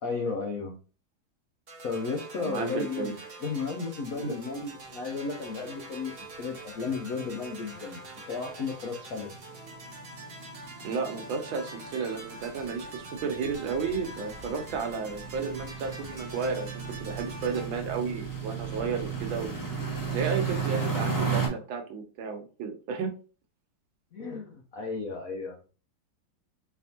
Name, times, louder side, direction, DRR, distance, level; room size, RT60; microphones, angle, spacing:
voice 1, 0.0-0.8 1.8-8.0 8.3-9.3 24.1-25.6, left 4 dB, 75° left, 2 dB, 0.7 m, -34 dB
sound 1, 1.7-17.7, right 2 dB, 50° right, 0.7 m, -45 dB
voice 2, 2.4-3.2 4.2-4.3 10.8-19.5 20.1-23.1, right 5 dB, 75° right, 5 dB, 1.5 m, -33 dB
sound 2, 4.4-4.5 4.7-4.9 5.3-5.4 5.6-21.5, right 5 dB, 25° left, 0.4 m, -36 dB
4.1 x 3.4 x 2.7 m, 0.37 s
omnidirectional pair, 2.3 m